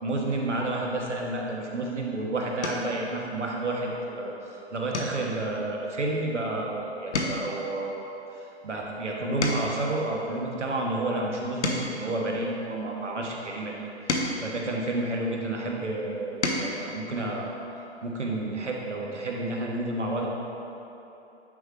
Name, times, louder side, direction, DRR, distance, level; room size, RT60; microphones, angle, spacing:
voice 1, 0.0-4.3 4.7-8.0 8.6-13.7 14.4-17.5 18.0-20.3, right 2 dB, 90° right, -1 dB, 1.2 m, -30 dB
sound 1, 1.7-2.0 2.6-3.0 3.5-3.9 4.2-4.4 4.9-6.7 7.0-9.9 10.5-13.0 13.7-15.5 16.1-16.8 18.2-18.3 18.6-18.8, left 2 dB, 75° left, 1.0 m, -34 dB
9.3 x 4.6 x 3.2 m, 3.0 s
hypercardioid pair, 135°, 34 cm